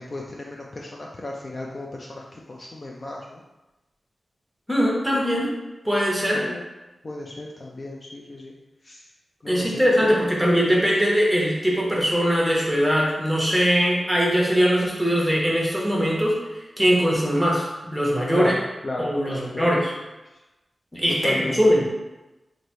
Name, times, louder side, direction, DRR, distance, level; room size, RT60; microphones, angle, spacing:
voice 1, 0.0-3.4 6.3-6.6 7.0-8.5 8.8-9.1 9.4-10.3 18.3-19.8 21.2-21.8, left 2 dB, 35° left, -2 dB, 0.4 m, -34 dB
voice 2, 4.7-5.5 5.8-6.4 9.5-18.5 19.0-19.9 20.9-21.8, equal, ahead, -3 dB, 0.8 m, -21 dB
3.1 x 2.5 x 4.3 m, 1.1 s
wide cardioid pair, 140°, 0 cm